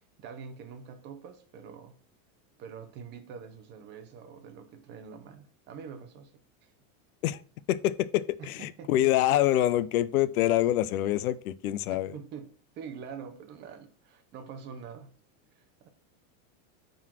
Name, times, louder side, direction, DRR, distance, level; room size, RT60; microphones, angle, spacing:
voice 1, 0.2-2.0 2.6-6.3 6.6-6.7 8.4-9.1 11.9-15.1 15.5-15.9, right 6 dB, 25° right, 0.8 m, -45 dB
voice 2, 7.7-12.1, left 13 dB, 80° left, 0.7 m, -26 dB
9.6 x 4.0 x 5.9 m
supercardioid pair, 170°, 42 cm